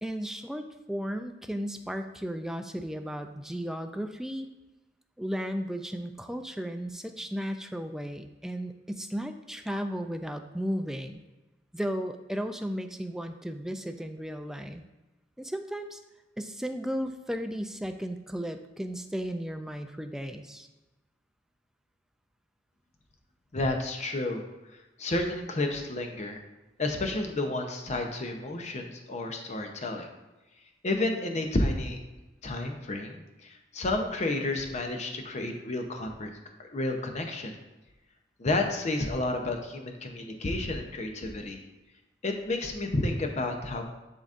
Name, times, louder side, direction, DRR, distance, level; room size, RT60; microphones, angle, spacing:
voice 1, 0.0-4.5 5.2-11.2 11.7-14.8 15.4-16.0 16.4-20.7, equal, 5° right, 6 dB, 0.3 m, -35 dB
voice 2, 23.5-24.4 25.0-26.4 26.8-30.1 30.8-32.0 32.4-36.3 36.6-37.6 38.4-41.6 42.2-43.8, left 2 dB, 40° left, 4 dB, 0.7 m, -31 dB
10.5 x 4.0 x 2.5 m, 1.1 s
head